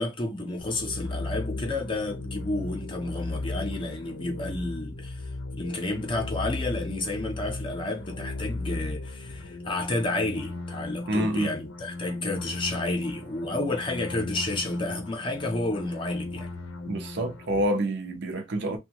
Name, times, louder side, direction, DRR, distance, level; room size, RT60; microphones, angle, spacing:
voice 1, 0.0-5.2 5.5-16.5, left 2 dB, 25° left, 0.6 m, -31 dB
sound 1, 0.6-17.7, left 2 dB, 90° left, 0.5 m, -36 dB
voice 2, 11.1-11.5 16.9-18.8, right 1 dB, 60° right, 0.6 m, -27 dB
2.6 x 2.2 x 2.9 m
head